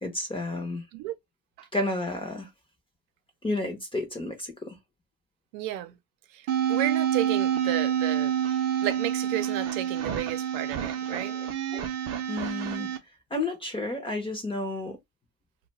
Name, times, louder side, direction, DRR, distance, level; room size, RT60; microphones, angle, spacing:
voice 1, 0.0-0.8 1.7-2.5 3.4-4.8 11.1-11.5 11.7-11.9 12.3-12.9 13.3-15.0, left 2 dB, 10° left, 0.5 m, -31 dB
voice 2, 5.5-5.9 6.7-8.3 8.8-11.3, right 13 dB, 85° right, 0.7 m, -32 dB
sound 1, 6.5-13.0, right 9 dB, 35° right, 0.5 m, -28 dB
2.4 x 2.3 x 3.9 m
supercardioid pair, 125°, 50 cm